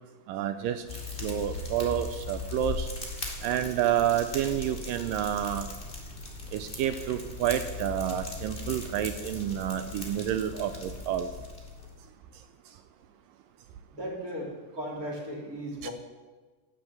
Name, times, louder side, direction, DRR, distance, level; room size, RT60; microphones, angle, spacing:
voice 1, 0.3-0.8 1.2-2.9 3.4-5.7 6.5-11.3 15.8-15.9, right 10 dB, 80° right, 9 dB, 2.0 m, -29 dB
Fire, 0.9-12.0, left 3 dB, 15° left, 2.0 m, -39 dB
voice 2, 13.9-15.9, equal, 25° right, -2 dB, 2.9 m, -36 dB
12.0 x 9.6 x 7.1 m, 1.3 s
omnidirectional pair, 4.4 m